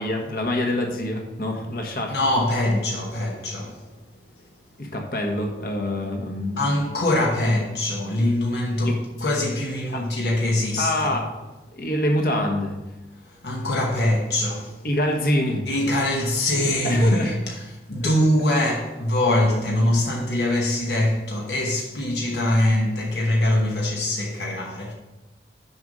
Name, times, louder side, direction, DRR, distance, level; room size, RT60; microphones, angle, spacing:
voice 1, 0.0-2.1 4.8-6.7 8.8-9.0 9.9-10.0 10.8-11.3 11.7-12.7 14.8-15.6 16.8-17.4 18.0-18.1, left 1 dB, 55° left, 1.3 m, -25 dB
voice 2, 2.1-3.9 6.6-11.2 13.1-14.8 15.7-17.6 17.9-24.9, left 1 dB, 70° left, 1.1 m, -23 dB
6.9 x 5.3 x 6.2 m
head